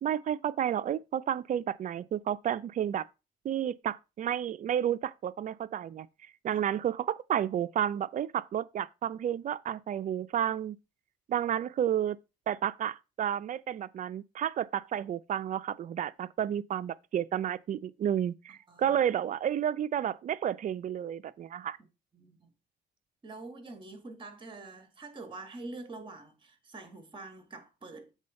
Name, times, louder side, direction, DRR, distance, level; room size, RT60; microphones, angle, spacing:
voice 1, 0.0-3.0 3.4-6.1 6.4-10.8 11.3-12.2 12.5-21.8, right 10 dB, 45° right, 0.4 m, -31 dB
voice 2, 18.7-19.0 22.1-22.5 23.2-28.1, right 3 dB, 30° right, 1.8 m, -45 dB
7.3 x 3.8 x 5.2 m
cardioid pair, 115°, 18 cm